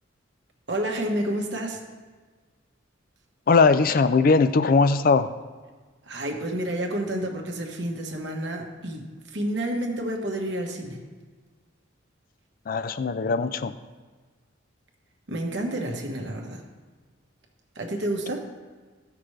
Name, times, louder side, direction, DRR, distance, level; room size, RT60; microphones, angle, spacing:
voice 1, 0.7-1.8 6.1-11.0 15.3-16.6 17.7-18.4, right 1 dB, 60° right, 1 dB, 1.3 m, -29 dB
voice 2, 3.5-5.3 12.7-13.7, left 4 dB, 45° left, 12 dB, 0.4 m, -20 dB
15.0 x 5.9 x 3.2 m, 1.4 s
head